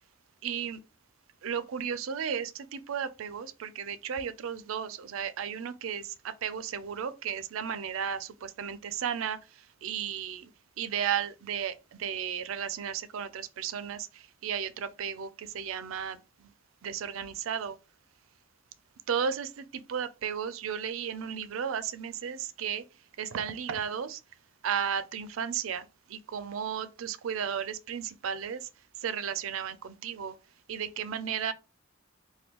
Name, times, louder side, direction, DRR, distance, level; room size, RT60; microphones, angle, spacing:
voice 1, 0.4-0.8 1.4-10.5 10.8-16.5 16.8-17.8 19.1-22.8 23.2-24.2 24.6-28.7 29.0-30.4 30.7-31.5, right 8 dB, 90° right, 0.4 m, -34 dB
3.4 x 2.2 x 2.9 m
head